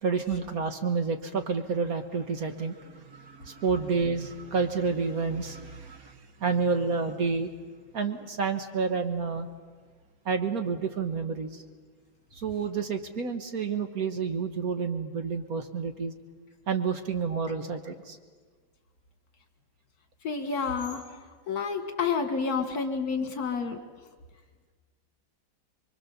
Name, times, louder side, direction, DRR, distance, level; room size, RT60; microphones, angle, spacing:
voice 1, 0.0-7.5 7.9-9.5 10.2-11.6 12.3-16.1 16.7-18.2, right 5 dB, 55° right, 7 dB, 1.5 m, -29 dB
voice 2, 20.2-21.0 21.5-23.8, left 5 dB, 55° left, 6 dB, 2.0 m, -29 dB
24.5 x 23.5 x 7.0 m, 1.5 s
omnidirectional pair, 2.0 m